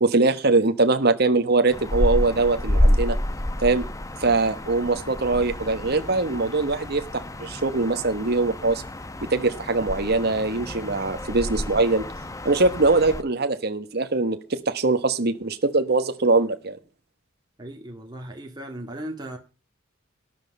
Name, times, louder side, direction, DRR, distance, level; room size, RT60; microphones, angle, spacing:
voice 1, 0.0-3.2 3.6-3.9 4.2-8.8 9.3-12.0 12.4-16.8, right 3 dB, 55° right, 1.3 m, -22 dB
sound 1, 1.7-13.2, left 1 dB, 15° left, 0.9 m, -29 dB
voice 2, 17.6-19.4, right 1 dB, 20° right, 2.2 m, -37 dB
13.0 x 10.5 x 5.4 m
head